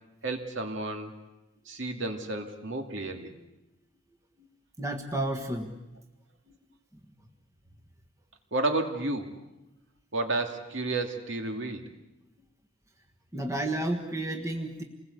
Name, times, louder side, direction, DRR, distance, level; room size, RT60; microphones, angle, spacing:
voice 1, 0.2-1.1 1.7-3.3 8.5-9.3 10.1-11.9, right 2 dB, 60° right, 4 dB, 2.6 m, -31 dB
voice 2, 4.8-5.8 13.3-14.8, right 1 dB, 15° right, 4 dB, 1.6 m, -31 dB
28.0 x 20.5 x 8.3 m, 0.98 s
head